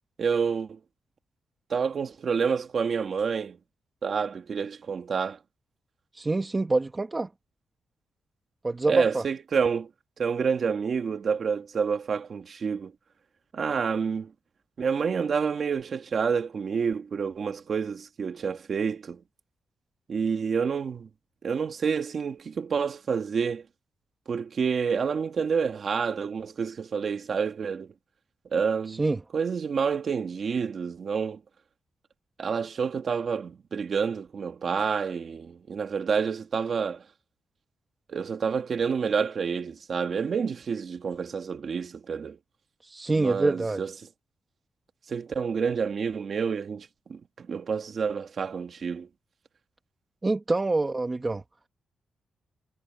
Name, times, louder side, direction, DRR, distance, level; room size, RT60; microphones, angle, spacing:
voice 1, 0.2-0.8 1.7-3.6 4.0-5.4 8.9-9.9 10.2-12.9 13.5-14.3 14.8-19.2 20.1-21.1 21.4-23.6 24.3-27.9 28.5-29.0 29.3-31.4 32.4-37.0 38.1-42.4 43.1-43.9 45.1-49.1, right 6 dB, 45° right, 2.1 m, -28 dB
voice 2, 6.1-7.3 8.6-9.3 28.9-29.2 42.8-43.8 50.2-51.4, right 2 dB, 20° right, 1.3 m, -26 dB
wide cardioid pair, 150°, 0 cm